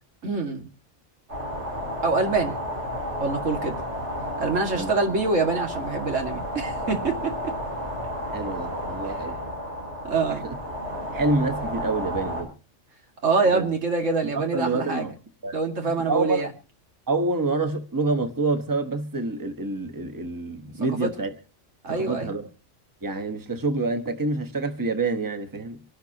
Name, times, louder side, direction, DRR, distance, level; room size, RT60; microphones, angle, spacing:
voice 1, 0.2-0.7 2.0-2.6 3.2-3.8 4.4-7.5 9.1-9.2 10.0-10.4 13.2-15.1 15.5-16.5 20.9-21.1 21.8-22.3, right 3 dB, 85° right, 2.5 m, -25 dB
sound 1, 1.3-12.4, equal, 65° right, 4.8 m, -32 dB
voice 2, 8.3-9.4 10.3-10.6 11.1-12.5 13.5-13.7 14.2-15.1 15.4-15.5 15.8-16.4 17.1-21.3 21.9-22.5 23.0-25.8, right 3 dB, 15° right, 1.2 m, -27 dB
26.0 x 11.5 x 2.9 m
omnidirectional pair, 1.3 m